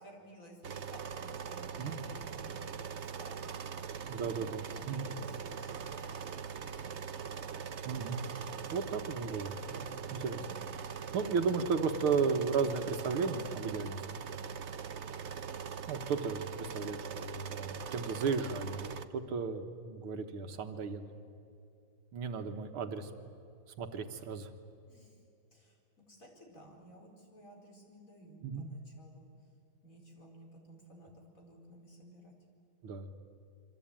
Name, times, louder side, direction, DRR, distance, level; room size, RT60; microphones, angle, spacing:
voice 1, 0.0-4.3 4.8-7.6 24.9-25.2 25.5-25.8 26.1-29.2 29.8-32.3, right 1 dB, 35° left, 1 dB, 4.9 m, -56 dB
sound 1, 0.6-19.0, right 7 dB, 60° right, 0.7 m, -42 dB
voice 2, 4.1-5.1 7.8-8.2 8.7-10.4 11.1-14.0 15.9-21.1 22.1-23.1 23.8-24.5 28.4-28.7 32.8-33.1, right 5 dB, 80° right, 6 dB, 2.2 m, -34 dB
26.0 x 25.0 x 8.9 m, 2.5 s
omnidirectional pair, 2.4 m